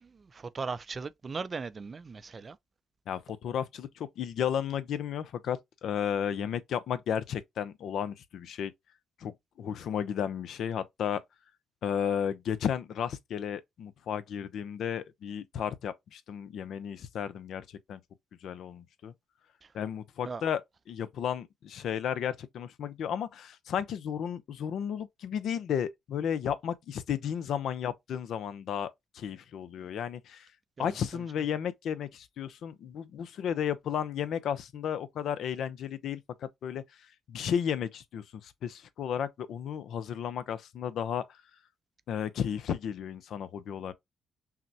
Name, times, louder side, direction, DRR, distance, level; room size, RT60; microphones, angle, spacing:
voice 1, 0.0-2.6 20.2-20.4 30.8-30.9, right 4 dB, 35° right, 0.4 m, -38 dB
voice 2, 3.1-8.7 9.2-11.2 11.8-17.6 17.9-18.0 18.4-19.1 19.7-20.6 20.9-30.5 30.8-36.8 37.3-41.2 42.1-43.9, left 8 dB, 70° left, 0.5 m, -33 dB
5.7 x 2.1 x 2.6 m
cardioid pair, 90°, 0 cm